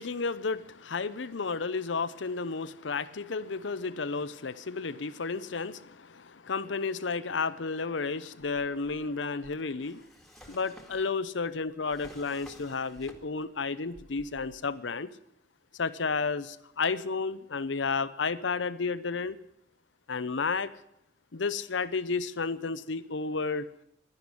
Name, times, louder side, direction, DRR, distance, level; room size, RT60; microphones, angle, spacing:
voice 1, 0.0-10.1 10.5-15.1 15.8-19.4 20.1-20.7 21.3-23.7, left 4 dB, 80° left, 15 dB, 0.8 m, -32 dB
Drawer open or close, 9.2-13.6 13.9-14.7, equal, ahead, 1.9 m, -53 dB
11.5 x 10.5 x 9.8 m, 0.78 s
head